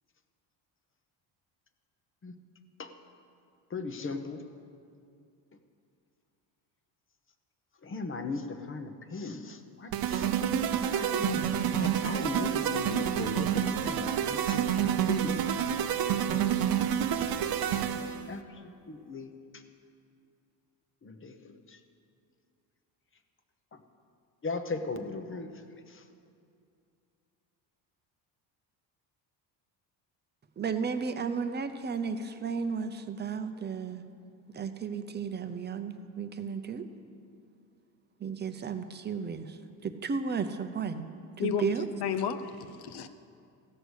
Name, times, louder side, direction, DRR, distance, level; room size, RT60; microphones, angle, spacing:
voice 1, 3.7-4.4 7.8-10.3 10.9-15.7 16.1-16.6 17.7-19.6 21.0-21.8 23.7-23.8 24.4-26.0, left 3 dB, 30° left, 6 dB, 0.9 m, -38 dB
sound 1, 9.9-18.3, right 9 dB, 55° right, 0.7 m, -28 dB
voice 2, 30.6-34.0 34.5-36.8 38.2-39.5 39.8-41.0 41.4-41.9, right 5 dB, 25° right, 8 dB, 0.7 m, -33 dB
voice 3, 41.4-43.1, left 7 dB, 60° left, 11 dB, 0.8 m, -33 dB
16.0 x 6.6 x 6.4 m, 2.4 s
cardioid pair, 110°, 44 cm